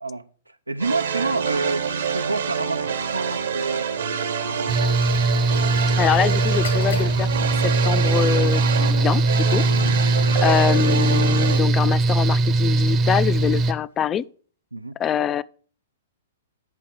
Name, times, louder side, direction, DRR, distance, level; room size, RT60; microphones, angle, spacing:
voice 1, 0.0-4.2 4.5-4.8 9.7-10.0 14.7-15.0, right 3 dB, 85° right, 0.6 m, -29 dB
sound 1, 0.8-11.6, right 7 dB, 65° right, 1.2 m, -27 dB
Mechanical fan, 4.7-13.7, right 2 dB, 25° right, 0.8 m, -20 dB
voice 2, 6.0-9.2 9.5-9.6 10.4-14.2 15.0-15.4, left 9 dB, 20° left, 0.4 m, -24 dB
sound 2, 6.4-14.3, left 6 dB, 65° left, 1.6 m, -44 dB
7.9 x 5.8 x 6.4 m
figure-of-eight pair, 110°, 0 cm